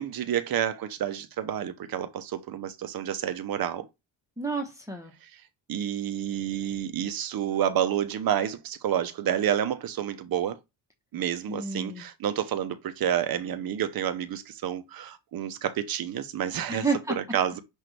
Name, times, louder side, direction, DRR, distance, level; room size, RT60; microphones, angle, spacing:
voice 1, 0.0-3.9 5.2-5.3 5.7-10.6 11.1-16.9 17.1-17.6, right 10 dB, 45° right, 0.8 m, -29 dB
voice 2, 4.4-5.1 11.5-12.0 16.7-17.4, right 3 dB, 5° right, 1.1 m, -30 dB
6.0 x 2.7 x 3.2 m
cardioid pair, 100°, 49 cm